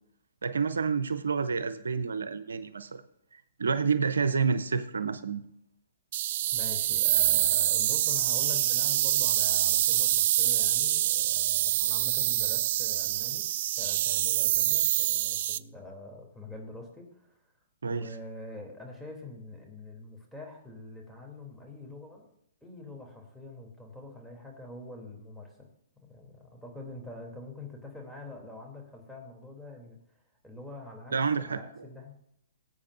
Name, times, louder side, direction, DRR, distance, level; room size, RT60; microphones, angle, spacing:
voice 1, 0.4-3.0 3.6-5.4 17.8-18.1 31.1-31.6, right 5 dB, 80° right, 12 dB, 0.7 m, -28 dB
sound 1, 6.1-15.6, right 13 dB, 50° right, 0.3 m, -26 dB
voice 2, 6.5-13.5 13.8-17.3 17.9-22.3 22.6-25.7 26.0-30.0 30.4-32.1, left 2 dB, ahead, -1 dB, 3.0 m, -45 dB
20.0 x 8.6 x 2.6 m, 0.74 s
hypercardioid pair, 135°, 0 cm